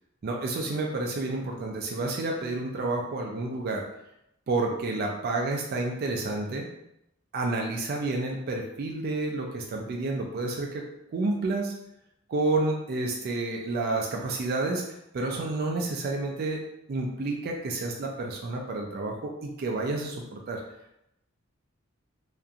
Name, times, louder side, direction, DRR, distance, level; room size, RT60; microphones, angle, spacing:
voice 1, 0.2-3.9 4.5-6.7 7.3-10.8 11.1-11.7 12.3-14.8 15.1-16.6 16.9-20.6, right 2 dB, 50° right, 0 dB, 0.3 m, -30 dB
2.8 x 2.5 x 2.3 m, 0.82 s
head